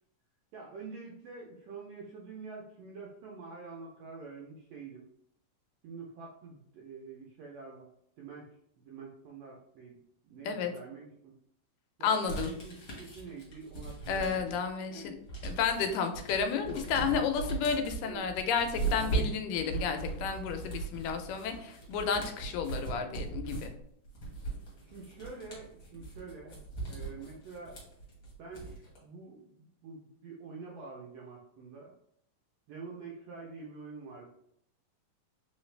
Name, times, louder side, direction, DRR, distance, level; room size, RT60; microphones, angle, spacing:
voice 1, 0.5-5.1 5.8-7.9 8.2-8.5 8.8-10.0 10.2-11.4 12.0-14.5 14.8-15.1 18.0-18.5 24.9-27.8 28.4-31.9 32.7-34.3, right 4 dB, 80° right, -2 dB, 1.5 m, -47 dB
voice 2, 12.0-12.5 14.1-15.2 15.4-23.7, left 6 dB, 90° left, 6 dB, 2.2 m, -32 dB
sound 1, 12.3-14.7 15.0-29.0, right 4 dB, 45° left, 1.9 m, -38 dB
4.5 x 3.2 x 3.2 m, 0.75 s
omnidirectional pair, 3.7 m